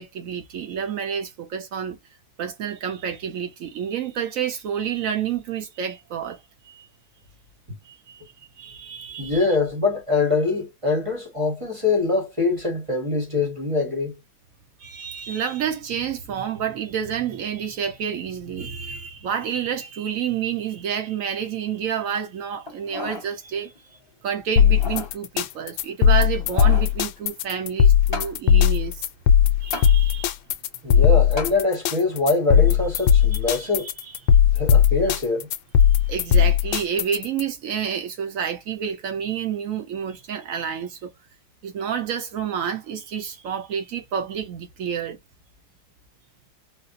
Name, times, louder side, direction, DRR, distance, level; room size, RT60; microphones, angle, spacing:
voice 1, 0.0-2.0 2.4-6.4 6.6-6.9 7.8-9.5 14.8-23.7 24.2-29.1 29.6-30.3 33.5-33.9 36.0-41.1 41.6-45.2, right 8 dB, 70° right, 0.7 m, -29 dB
voice 2, 9.2-14.1 30.8-33.9 34.5-35.5, left 3 dB, 25° right, 0.7 m, -23 dB
sound 1, 22.7-23.3 23.7-23.8 24.6-25.1 26.1-26.9 28.1-28.3 29.7-29.9 31.4-31.6 32.2-32.3, left 2 dB, 20° left, 0.8 m, -33 dB
sound 2, 24.6-37.4, left 8 dB, 80° left, 1.3 m, -18 dB
4.1 x 2.0 x 2.6 m
omnidirectional pair, 2.2 m